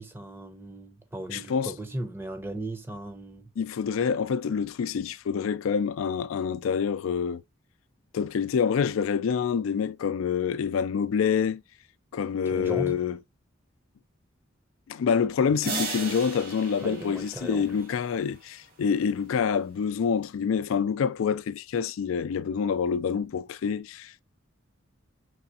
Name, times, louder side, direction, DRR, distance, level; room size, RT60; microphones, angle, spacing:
voice 1, 0.0-3.5 12.5-13.0 16.8-17.7, right 1 dB, 10° right, 0.7 m, -37 dB
voice 2, 1.3-1.7 3.6-7.4 8.1-11.6 12.1-13.2 14.9-24.2, left 6 dB, 85° left, 0.4 m, -27 dB
sound 1, 15.6-18.1, right 2 dB, 50° right, 1.8 m, -35 dB
4.7 x 3.4 x 2.7 m
head